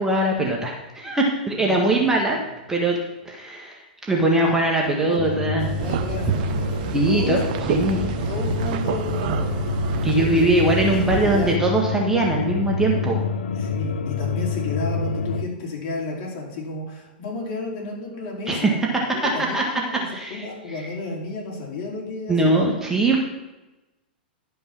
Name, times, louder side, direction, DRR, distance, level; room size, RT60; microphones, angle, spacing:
voice 1, 0.0-2.4 2.7-3.0 3.2-3.8 4.1-5.7 6.9-7.4 7.7-8.0 10.0-13.2 18.5-18.7 19.5-19.6 20.1-20.4 22.3-23.2, right 2 dB, 10° right, -1 dB, 1.7 m, -21 dB
voice 2, 1.5-2.1 5.0-5.4 5.7-6.8 7.1-9.6 10.1-10.5 10.7-11.5 13.5-18.8 19.1-20.0 20.3-22.7, left 3 dB, 50° left, -3 dB, 4.4 m, -32 dB
sound 1, 5.2-15.4, left 4 dB, 75° left, 0.6 m, -27 dB
sound 2, 5.6-11.6, right 10 dB, 55° right, 0.7 m, -29 dB
11.5 x 5.5 x 6.1 m, 1.0 s
hypercardioid pair, 105°, 5 cm